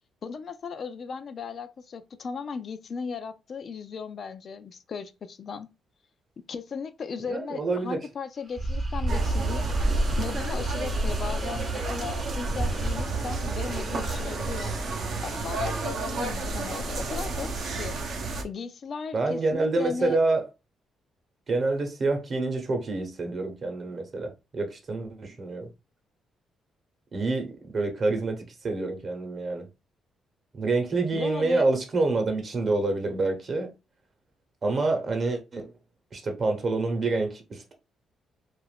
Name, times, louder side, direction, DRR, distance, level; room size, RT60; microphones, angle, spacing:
voice 1, 0.2-5.7 6.5-9.7 10.2-14.8 15.2-18.0 18.4-20.2 31.1-31.7, left 5 dB, 50° left, 0.3 m, -36 dB
voice 2, 7.3-8.0 19.1-20.5 21.5-25.7 27.1-27.5 27.7-29.7 30.5-33.7 34.6-35.7 36.1-37.7, right 3 dB, 45° right, 0.9 m, -27 dB
sound 1, 8.6-14.6, right 2 dB, 25° right, 0.6 m, -33 dB
sound 2, 9.1-18.4, right 2 dB, 65° right, 0.6 m, -30 dB
2.4 x 2.2 x 3.3 m
cardioid pair, 90°, 0 cm